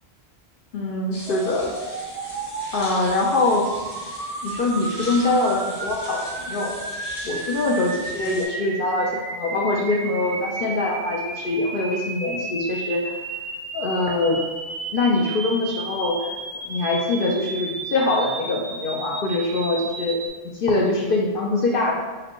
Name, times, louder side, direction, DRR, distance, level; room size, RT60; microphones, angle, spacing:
voice 1, 0.7-1.7 2.7-3.7 4.4-6.2 6.5-6.7 7.2-13.1 13.7-14.5 14.9-16.3 16.6-20.2 20.5-21.9, left 2 dB, 60° left, -1 dB, 0.7 m, -23 dB
sound 1, 1.1-8.5, equal, 25° left, 1.0 m, -40 dB
sound 2, 1.3-20.3, right 3 dB, 55° right, 0.4 m, -33 dB
4.9 x 2.1 x 4.5 m, 1.3 s
omnidirectional pair, 1.2 m